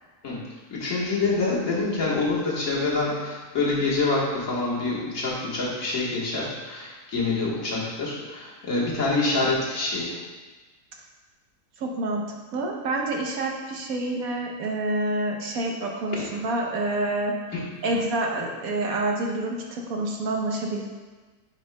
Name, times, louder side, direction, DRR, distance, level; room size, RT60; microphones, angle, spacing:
voice 1, 0.2-10.2 17.5-17.9, left 3 dB, 60° left, -5 dB, 1.8 m, -26 dB
voice 2, 11.8-12.2 12.5-17.3 17.8-20.8, right 2 dB, 65° right, 1 dB, 1.2 m, -27 dB
9.8 x 4.9 x 2.2 m, 1.3 s
omnidirectional pair, 1.6 m